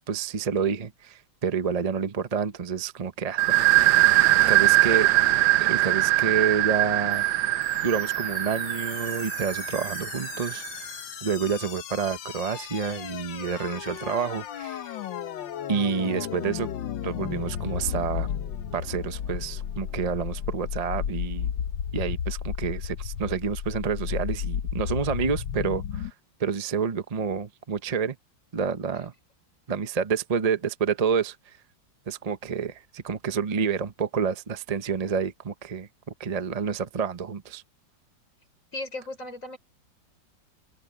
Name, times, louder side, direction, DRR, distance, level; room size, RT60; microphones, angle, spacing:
voice 1, 0.0-3.6 4.3-5.1 5.6-7.2 7.8-10.6 11.2-15.0 15.7-16.7 17.0-18.3 18.7-21.5 21.9-26.1 26.4-28.2 28.5-29.1 29.7-31.5 32.1-35.9 36.2-37.6, right 6 dB, 35° right, 0.6 m, -28 dB
sound 1, 3.4-10.8, right 17 dB, 70° right, 1.2 m, -22 dB
sound 2, 7.1-26.1, left 8 dB, 80° left, 1.7 m, -34 dB
voice 2, 38.7-39.6, left 2 dB, 40° left, 5.9 m, -36 dB
open air
omnidirectional pair, 2.1 m